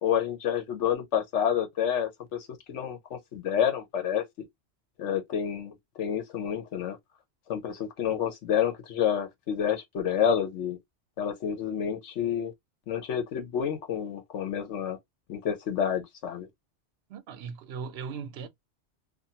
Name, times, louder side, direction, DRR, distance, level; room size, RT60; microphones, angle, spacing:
voice 1, 0.0-4.2 5.0-7.0 7.5-10.8 11.2-12.5 12.9-15.0 15.3-16.5, left 8 dB, 90° left, 1.1 m, -29 dB
voice 2, 17.1-18.5, right 6 dB, 70° right, 0.8 m, -38 dB
2.6 x 2.3 x 2.7 m
omnidirectional pair, 1.2 m